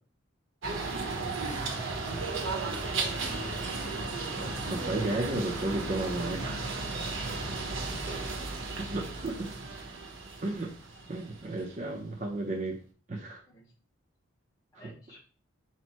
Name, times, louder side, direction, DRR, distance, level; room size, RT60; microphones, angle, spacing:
sound 1, 0.6-11.8, right 3 dB, 75° right, 1.0 m, -35 dB
voice 1, 1.7-2.8 3.6-3.7 7.4-7.9 13.5-13.7 14.7-15.2, equal, 15° left, -4 dB, 0.9 m, -52 dB
voice 2, 4.3-6.7 7.2-7.3 8.8-9.6 10.4-10.7 11.1-12.8 13.1-13.4, right 2 dB, 35° right, -1 dB, 0.5 m, -33 dB
4.3 x 2.1 x 4.3 m, 0.39 s
head